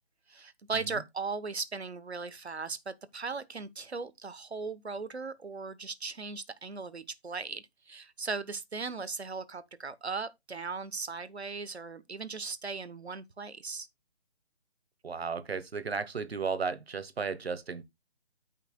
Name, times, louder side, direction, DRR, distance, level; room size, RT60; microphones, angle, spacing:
voice 1, 0.3-13.9, right 4 dB, 90° right, 1.0 m, -38 dB
voice 2, 15.0-17.8, right 5 dB, 70° right, 1.3 m, -34 dB
14.0 x 5.7 x 2.3 m
figure-of-eight pair, 155°, 32 cm